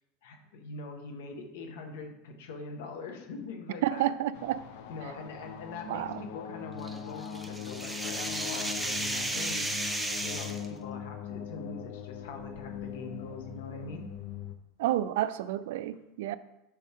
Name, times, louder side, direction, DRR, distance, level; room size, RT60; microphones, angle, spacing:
voice 1, 0.2-4.1 4.9-9.7 10.2-14.1, left 3 dB, 85° left, 1.7 m, -43 dB
voice 2, 3.8-4.7 5.9-6.2 14.8-16.4, right 13 dB, 80° right, 0.5 m, -30 dB
sound 1, 4.3-14.6, left 9 dB, 65° left, 0.7 m, -41 dB
sound 2, 6.8-10.7, right 1 dB, 5° right, 0.7 m, -34 dB
11.0 x 5.4 x 3.7 m
supercardioid pair, 155°, 0 cm